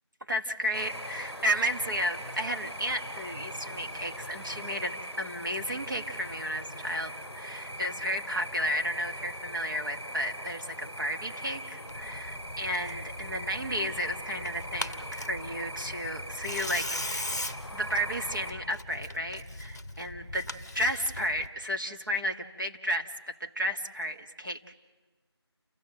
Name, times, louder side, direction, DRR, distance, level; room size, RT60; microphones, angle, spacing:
voice 1, 0.3-17.3 17.7-20.5 20.7-24.6, equal, 45° right, 3 dB, 1.4 m, -33 dB
sound 1, 0.7-18.5, equal, 10° right, 2.0 m, -41 dB
Tearing, 11.9-21.5, left 1 dB, 40° left, 0.9 m, -40 dB
28.5 x 15.0 x 7.6 m, 1.3 s
figure-of-eight pair, 180°, 14 cm